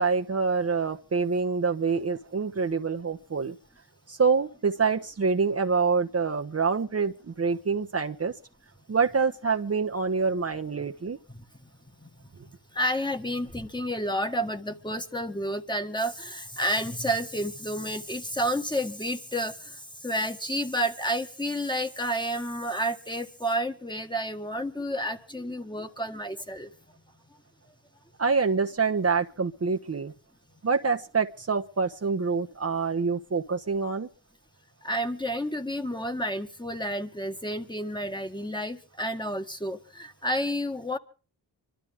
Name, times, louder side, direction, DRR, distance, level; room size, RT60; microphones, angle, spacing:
voice 1, 0.0-3.5 4.1-8.3 8.9-11.2 28.2-30.1 30.6-34.1, right 5 dB, 35° right, 1.1 m, -26 dB
voice 2, 12.7-26.7 34.8-41.0, equal, 10° left, 1.8 m, -30 dB
25.5 x 13.0 x 3.6 m
cardioid pair, 60°, 43 cm